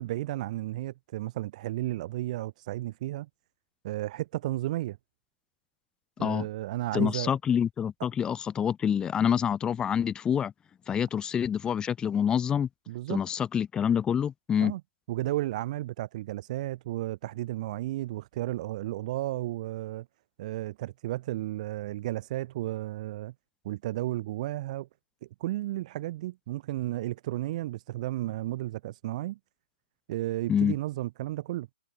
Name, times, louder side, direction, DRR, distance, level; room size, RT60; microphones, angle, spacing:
voice 1, 0.0-3.3 3.8-5.0 6.2-7.3 12.9-13.2 14.6-14.8 15.1-20.1 20.4-23.3 23.6-24.9 25.2-29.4 30.1-31.7, right 16 dB, 40° right, 2.6 m, -33 dB
voice 2, 6.9-10.5 10.9-12.7 13.1-14.7 30.5-30.7, left 8 dB, 15° left, 2.0 m, -27 dB
figure-of-eight pair, 125°, 6 cm